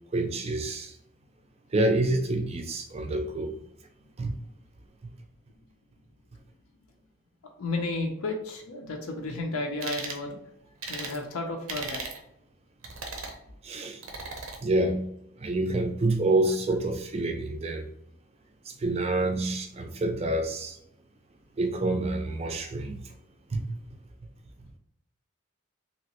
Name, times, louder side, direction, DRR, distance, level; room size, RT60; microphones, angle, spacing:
voice 1, 0.1-0.9 1.7-3.6 4.2-4.3 13.6-14.0 14.6-15.1 15.4-17.8 18.7-20.8 21.6-23.0 23.5-23.6, right 2 dB, 30° right, 0.4 m, -27 dB
voice 2, 7.6-10.4 10.9-12.0, left 2 dB, 90° left, 0.6 m, -32 dB
sound 1, 9.8-10.2 10.8-11.2 11.7-12.2 12.8-13.4 14.0-14.6, right 3 dB, 80° right, 0.6 m, -36 dB
3.0 x 2.9 x 2.9 m
head